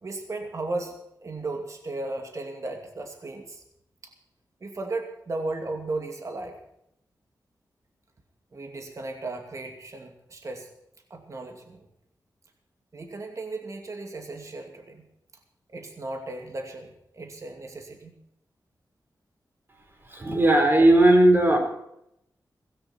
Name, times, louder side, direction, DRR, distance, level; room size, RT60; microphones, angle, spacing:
voice 1, 0.0-3.6 4.0-4.1 4.6-6.6 8.5-10.7 11.1-11.9 12.9-15.1 15.7-18.1 20.0-20.2, right 2 dB, 50° right, 4 dB, 2.5 m, -35 dB
voice 2, 20.1-21.6, right 1 dB, 30° right, 3 dB, 4.4 m, -17 dB
18.0 x 16.5 x 4.5 m, 0.79 s
wide cardioid pair, 110°, 7 cm